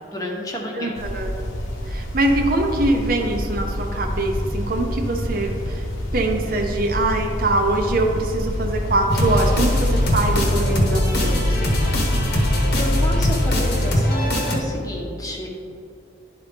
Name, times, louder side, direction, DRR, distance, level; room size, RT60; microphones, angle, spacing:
voice 1, 0.1-0.9 12.7-15.5, equal, 20° left, -1 dB, 0.9 m, -30 dB
voice 2, 0.8-1.3 1.9-5.8 6.1-11.7, right 2 dB, 45° right, 3 dB, 0.6 m, -23 dB
sound 1, 0.9-13.5, equal, 85° left, 1.1 m, -28 dB
sound 2, 9.1-14.6, left 1 dB, 50° left, 1.0 m, -20 dB
11.0 x 4.1 x 3.4 m, 2.6 s
head